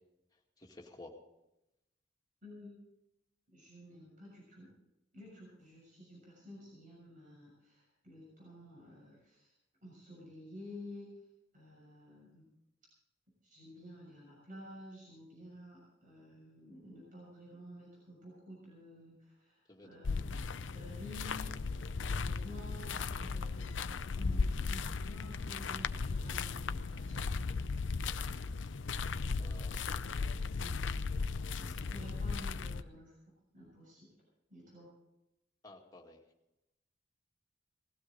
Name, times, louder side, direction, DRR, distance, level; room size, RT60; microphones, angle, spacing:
voice 1, 0.6-1.1 19.7-20.2 29.4-29.8 31.9-32.0 35.6-36.2, left 2 dB, 20° left, -1 dB, 2.3 m, -53 dB
voice 2, 2.4-2.8 3.5-4.7 5.1-9.5 9.8-11.1 11.5-12.5 13.4-21.7 22.0-27.6 29.9-30.9 31.6-33.2 33.5-34.1 34.5-34.9, left 1 dB, 45° right, -4 dB, 6.7 m, -52 dB
sound 1, 20.0-32.8, left 4 dB, 80° left, 0.6 m, -36 dB
19.5 x 15.5 x 3.9 m, 0.87 s
head